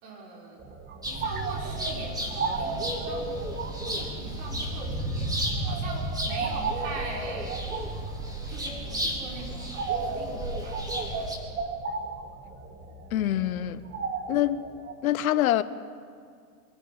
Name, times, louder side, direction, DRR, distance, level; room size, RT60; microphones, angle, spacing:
voice 1, 0.0-0.6 1.0-3.3 3.8-7.6 8.5-11.6, right 3 dB, 55° right, 6.1 m, -42 dB
sound 1, 0.6-14.9, right 4 dB, 25° right, 1.8 m, -36 dB
sound 2, 1.0-11.4, right 1 dB, 10° right, 3.1 m, -33 dB
voice 2, 13.1-13.8 14.3-14.6 15.0-15.6, left 13 dB, 65° left, 1.1 m, -24 dB
23.5 x 14.0 x 8.8 m
hypercardioid pair, 120°, 46 cm